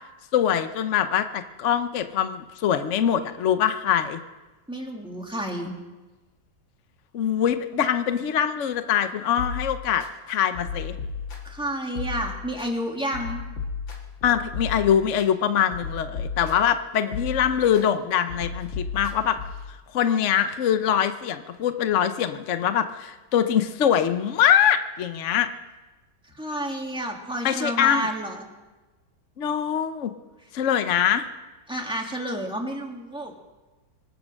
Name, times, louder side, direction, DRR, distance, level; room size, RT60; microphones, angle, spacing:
voice 1, 0.3-4.2 7.1-11.0 14.2-19.4 19.9-25.5 27.4-28.1 29.4-30.1 30.5-31.3, left 9 dB, 60° left, 10 dB, 0.8 m, -23 dB
voice 2, 4.7-5.7 11.4-13.4 26.4-28.5 31.7-33.3, right 1 dB, 5° right, 0 dB, 2.0 m, -30 dB
sound 1, 9.4-10.1 10.5-11.6 12.0-12.7 13.1-15.3 15.7-16.8 17.1-17.9 18.3-19.7, left 5 dB, 75° left, 2.7 m, -34 dB
25.0 x 8.6 x 6.4 m, 1.2 s
omnidirectional pair, 2.1 m